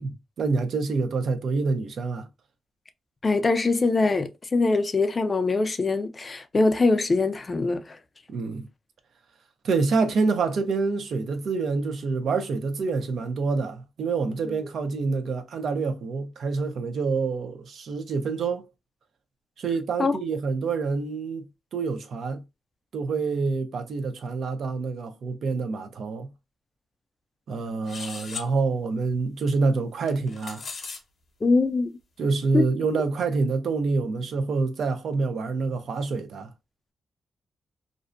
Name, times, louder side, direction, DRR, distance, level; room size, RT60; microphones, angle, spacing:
voice 1, 0.0-2.3 8.3-8.7 9.6-18.7 19.6-21.5 21.7-22.4 22.9-26.3 27.5-30.6 32.2-36.5, right 4 dB, 70° right, 0.5 m, -27 dB
voice 2, 3.2-8.0 20.0-20.1 31.4-31.9, left 3 dB, 35° left, 0.4 m, -23 dB
sound 1, 27.9-28.5 30.1-31.0, left 5 dB, 60° left, 0.8 m, -37 dB
2.5 x 2.1 x 2.4 m
cardioid pair, 95°, 0 cm